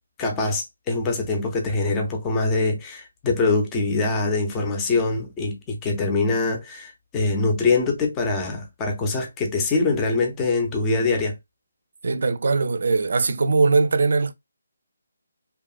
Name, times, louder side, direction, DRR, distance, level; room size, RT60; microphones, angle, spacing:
voice 1, 0.2-11.4, left 3 dB, 15° left, 0.5 m, -23 dB
voice 2, 12.0-14.3, right 4 dB, 60° right, 0.4 m, -20 dB
2.7 x 2.3 x 2.3 m
hypercardioid pair, 165°, 0 cm